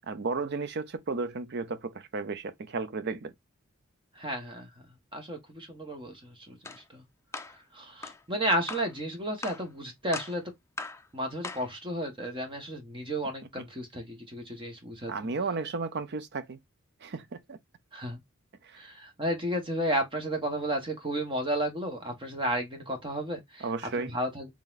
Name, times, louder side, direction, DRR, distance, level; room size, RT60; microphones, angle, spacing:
voice 1, 0.1-3.3 15.1-16.6 17.0-17.6 18.6-18.8 23.6-24.1, right 4 dB, 55° right, 0.6 m, -33 dB
voice 2, 4.2-4.7 5.1-6.6 6.9-7.0 7.7-10.4 11.1-15.1 17.9-18.2 18.8-23.6 24.0-24.5, right 1 dB, 25° right, 1.0 m, -32 dB
sound 1, 6.6-6.8 7.3-7.6 8.0-8.2 8.7-8.9 9.4-9.7 10.1-10.4 10.8-11.0 11.4-11.7, left 3 dB, 15° left, 0.5 m, -39 dB
3.9 x 3.5 x 2.4 m
head